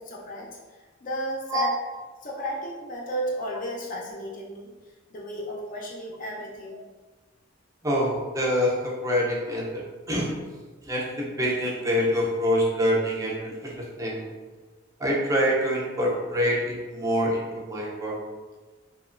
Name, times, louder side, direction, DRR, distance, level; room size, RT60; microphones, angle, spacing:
voice 1, 0.1-0.6 1.0-1.8 2.2-4.7 5.1-6.8, equal, 45° left, -2 dB, 0.5 m, -33 dB
voice 2, 7.8-9.8 10.1-10.3 10.9-14.3 15.0-18.2, equal, 15° right, -3 dB, 0.5 m, -25 dB
2.9 x 2.1 x 2.4 m, 1.3 s
head